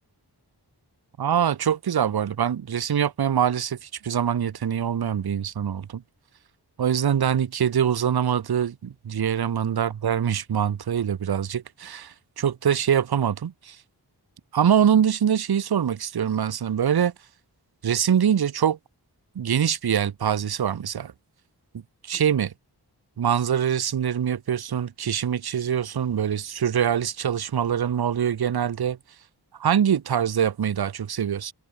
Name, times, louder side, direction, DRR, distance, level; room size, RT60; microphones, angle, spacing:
voice 1, 1.2-6.0 6.8-13.8 14.5-17.1 17.8-18.8 19.4-21.1 22.0-22.5 23.2-29.0 29.6-31.5, right 8 dB, 65° right, 0.6 m, -24 dB
wide cardioid pair, 45°, 42 cm